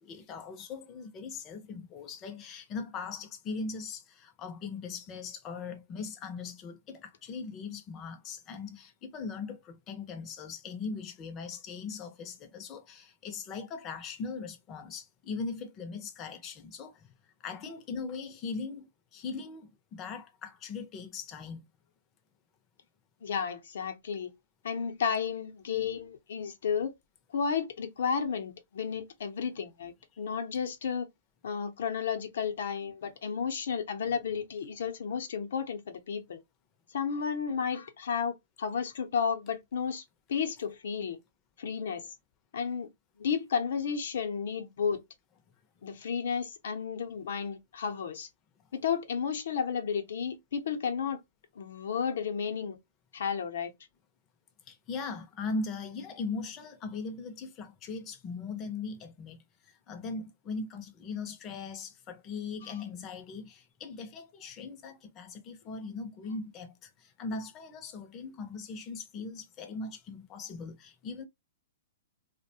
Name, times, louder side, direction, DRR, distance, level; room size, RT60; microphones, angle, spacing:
voice 1, 0.0-17.1 17.4-21.6 54.7-59.4 59.9-71.3, left 4 dB, 25° left, 0.6 m, -40 dB
voice 2, 23.2-24.3 24.6-26.9 27.3-31.1 31.4-36.4 36.9-40.0 40.3-41.2 41.6-42.1 42.5-42.9 43.2-45.0 45.8-48.3 48.7-51.2 51.6-52.8 53.1-53.7, left 6 dB, 70° left, 0.7 m, -32 dB
2.5 x 2.1 x 2.7 m
hypercardioid pair, 145°, 0 cm